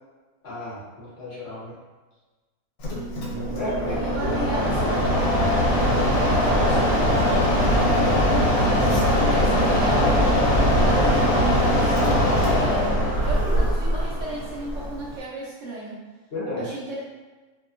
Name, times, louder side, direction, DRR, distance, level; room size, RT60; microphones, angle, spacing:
voice 1, 0.4-1.7 3.3-4.5 16.3-16.7, left 1 dB, 55° left, -8 dB, 0.8 m, -32 dB
Mechanisms, 2.8-15.2, equal, 80° left, 1.1 m, -21 dB
voice 2, 3.6-5.1 6.3-13.0 13.2-16.1 16.6-17.0, right 3 dB, 70° right, -6 dB, 0.8 m, -34 dB
2.7 x 2.2 x 2.4 m, 1.2 s
omnidirectional pair, 1.6 m